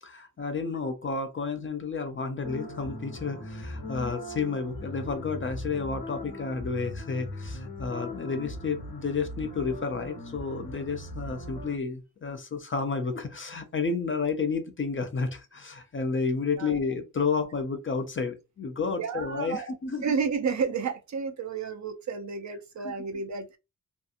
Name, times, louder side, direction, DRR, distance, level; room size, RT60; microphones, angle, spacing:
voice 1, 0.0-20.1 22.8-22.9, left 4 dB, 35° left, 0.4 m, -31 dB
sound 1, 2.4-11.8, left 1 dB, 85° left, 0.8 m, -39 dB
voice 2, 19.0-19.7 20.0-23.6, right 5 dB, 50° right, 0.5 m, -31 dB
2.7 x 2.5 x 2.4 m
wide cardioid pair, 155°, 37 cm